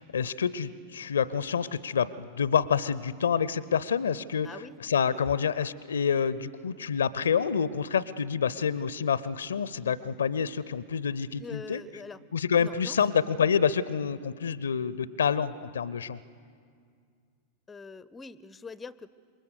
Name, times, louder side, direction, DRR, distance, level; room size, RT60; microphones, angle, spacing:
voice 1, 0.0-11.8 12.3-16.2, left 7 dB, 70° left, 19 dB, 0.5 m, -28 dB
voice 2, 4.4-4.8 5.0-5.2 11.4-12.2 12.6-13.0 17.7-19.1, left 4 dB, 15° left, 19 dB, 0.5 m, -43 dB
27.0 x 22.5 x 6.6 m, 2.2 s
figure-of-eight pair, 90°, 0 cm